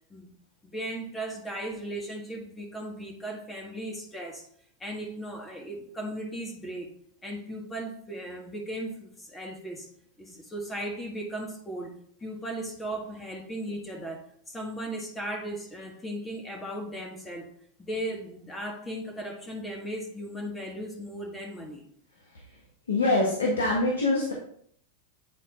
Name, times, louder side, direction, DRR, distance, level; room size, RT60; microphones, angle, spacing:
voice 1, 0.6-4.5 4.8-6.9 7.2-9.9 10.2-17.5 17.8-21.9, right 1 dB, 15° left, 1 dB, 1.6 m, -37 dB
voice 2, 22.9-24.3, left 2 dB, 90° left, -1 dB, 1.4 m, -24 dB
8.6 x 4.1 x 3.7 m, 0.63 s
hypercardioid pair, 100°, 0 cm